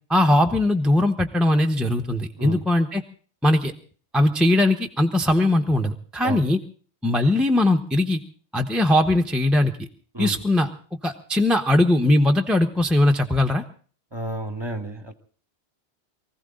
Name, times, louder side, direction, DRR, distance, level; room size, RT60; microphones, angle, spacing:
voice 1, 0.1-3.0 3.4-3.7 4.1-6.6 7.0-8.2 8.5-9.7 10.2-10.7 11.0-13.6, left 1 dB, ahead, 4 dB, 1.0 m, -20 dB
voice 2, 14.1-15.1, right 1 dB, 20° right, 9 dB, 1.6 m, -30 dB
24.0 x 15.5 x 3.8 m, 0.43 s
omnidirectional pair, 1.2 m